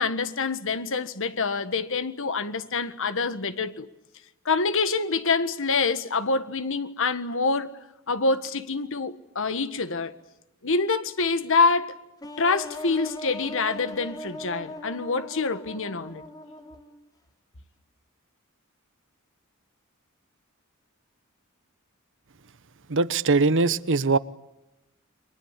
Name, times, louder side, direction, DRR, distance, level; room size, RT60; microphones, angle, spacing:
voice 1, 0.0-3.9 4.4-7.8 8.1-10.2 10.6-12.0 12.4-16.2, left 4 dB, 65° left, 1.6 m, -26 dB
sound 1, 12.2-17.1, left 1 dB, 20° left, 3.5 m, -40 dB
voice 2, 22.9-24.2, right 3 dB, 60° right, 1.0 m, -21 dB
30.0 x 24.0 x 8.4 m
head